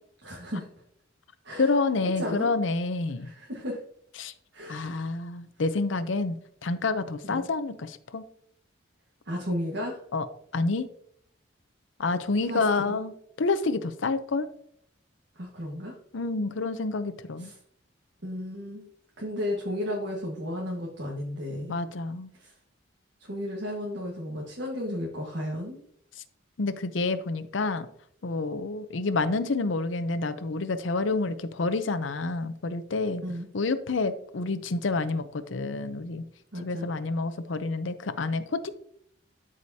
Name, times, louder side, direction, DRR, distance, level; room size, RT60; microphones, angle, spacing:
voice 1, 0.2-0.7 1.4-1.7 2.1-2.5 3.2-3.8 4.5-5.1 7.2-7.5 9.2-10.0 12.5-13.0 15.3-16.0 17.4-17.6 18.2-18.8 19.2-21.8 22.3-22.5 23.2-25.8 33.2-33.5 36.5-36.9, left 1 dB, 65° right, -3 dB, 1.6 m, -34 dB
voice 2, 1.6-3.3 4.2-4.3 4.7-6.4 6.6-8.2 10.1-10.3 10.5-10.9 12.0-14.5 16.1-17.5 21.7-22.3 26.6-27.9 28.2-33.2 33.5-36.2 36.6-38.7, left 3 dB, 75° left, 11 dB, 0.6 m, -28 dB
12.5 x 4.9 x 2.8 m, 0.67 s
head